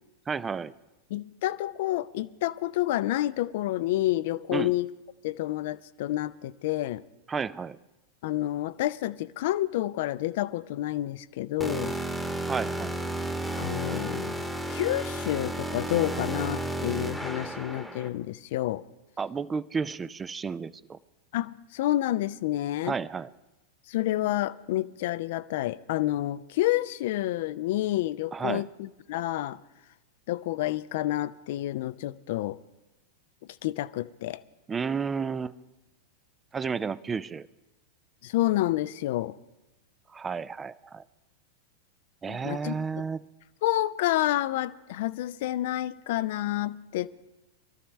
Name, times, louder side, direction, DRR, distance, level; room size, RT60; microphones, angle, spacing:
voice 1, 0.3-0.7 4.5-4.7 7.3-7.8 12.5-13.2 19.2-21.0 22.8-23.3 28.3-28.6 34.7-35.6 36.5-37.5 40.1-41.0 42.2-43.3, right 5 dB, 15° right, 0.4 m, -32 dB
voice 2, 1.1-4.9 5.2-7.0 8.2-12.0 13.6-14.4 14.7-18.8 21.3-23.0 23.9-29.6 30.3-32.6 33.6-34.4 38.2-39.4 42.3-42.9 43.6-47.1, left 15 dB, 55° left, 0.4 m, -29 dB
sound 1, 11.6-18.1, right 1 dB, ahead, 1.1 m, -32 dB
23.0 x 13.0 x 3.2 m
figure-of-eight pair, 90°, 0 cm